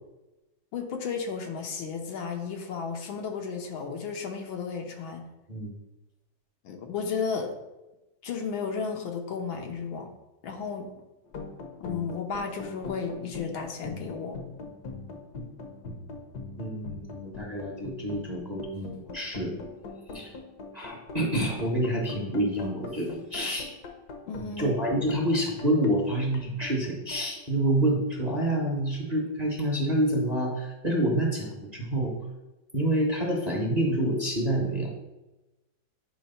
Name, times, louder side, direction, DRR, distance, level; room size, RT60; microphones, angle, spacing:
voice 1, 0.7-5.3 6.6-7.5 8.2-10.1 10.4-10.9 11.8-14.4 24.3-24.8, left 5 dB, 80° left, 3 dB, 1.8 m, -33 dB
plucked harp, 11.3-28.1, left 3 dB, 60° left, 1.3 m, -42 dB
voice 2, 16.6-19.5 20.1-20.3 20.7-23.7 24.6-32.1 32.7-34.9, right 1 dB, 30° right, -1 dB, 0.9 m, -27 dB
8.9 x 3.2 x 5.5 m, 1.0 s
omnidirectional pair, 2.2 m